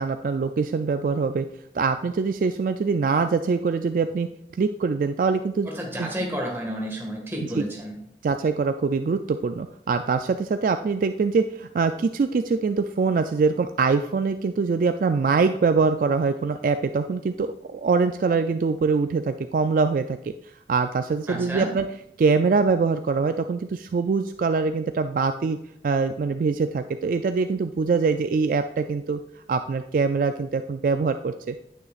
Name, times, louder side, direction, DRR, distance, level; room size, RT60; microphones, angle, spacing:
voice 1, 0.0-1.5 1.7-4.3 4.6-5.7 6.0-6.1 7.5-7.6 8.2-20.3 20.7-21.9 22.2-25.6 25.8-29.2 29.5-31.6, right 4 dB, 50° right, 8 dB, 0.3 m, -23 dB
voice 2, 5.6-8.0 21.3-21.7, equal, 15° right, -1 dB, 1.8 m, -31 dB
9.4 x 8.7 x 2.5 m, 0.79 s
head